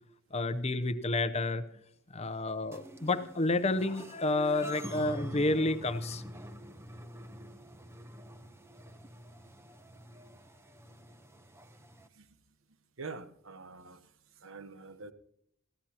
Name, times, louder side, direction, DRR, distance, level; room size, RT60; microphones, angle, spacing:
voice 1, 0.3-1.6 2.1-6.2, left 2 dB, 30° left, 12 dB, 0.7 m, -30 dB
sound 1, 2.7-12.1, equal, 15° right, 0.8 m, -47 dB
voice 2, 13.0-14.0 14.4-15.1, right 4 dB, 70° right, 12 dB, 1.0 m, -45 dB
21.5 x 15.0 x 2.9 m, 0.69 s
head